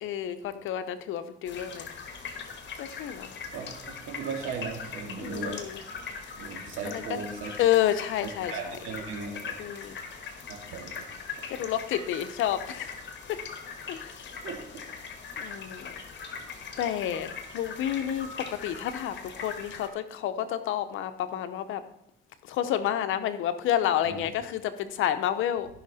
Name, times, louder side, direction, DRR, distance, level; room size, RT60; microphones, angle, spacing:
voice 1, 0.0-1.9 2.8-3.3 5.2-5.8 6.9-7.2 7.6-8.5 9.6-10.0 11.5-12.9 13.3-13.4 13.9-14.2 15.4-15.9 16.8-21.8 22.5-25.7, left 11 dB, 85° left, 10 dB, 0.9 m, -29 dB
sound 1, 1.4-19.9, left 5 dB, 65° left, 1.6 m, -41 dB
voice 2, 3.5-5.6 6.4-7.5 8.5-9.6 10.5-11.0 14.4-14.7 24.0-24.2, right 5 dB, 85° right, 2 dB, 2.2 m, -37 dB
15.0 x 5.9 x 4.2 m, 0.75 s
cardioid pair, 90°, 20 cm